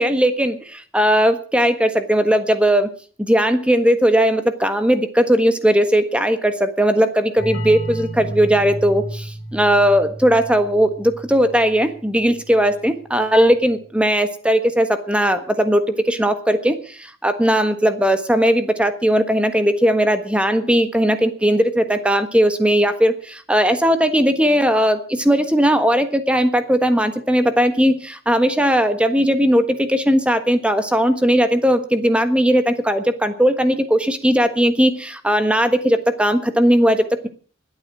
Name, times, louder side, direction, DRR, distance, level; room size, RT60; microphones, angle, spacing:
voice 1, 0.0-2.9 3.2-37.3, equal, 5° right, 9 dB, 1.4 m, -18 dB
sound 1, 7.4-12.8, right 1 dB, 45° left, 5.4 m, -32 dB
21.5 x 8.9 x 6.1 m, 0.43 s
head